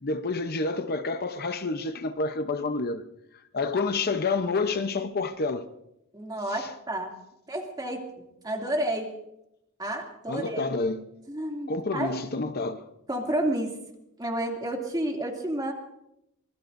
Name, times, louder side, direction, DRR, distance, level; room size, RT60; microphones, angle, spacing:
voice 1, 0.0-3.0 3.5-5.7 6.5-6.7 10.3-11.1 11.7-12.8, left 3 dB, 50° left, 0.8 m, -29 dB
voice 2, 6.1-7.1 7.5-8.0 8.4-9.1 9.8-10.7 11.3-12.1 13.1-13.7 14.2-15.7, right 1 dB, 20° right, 2.6 m, -30 dB
25.5 x 21.0 x 2.6 m
head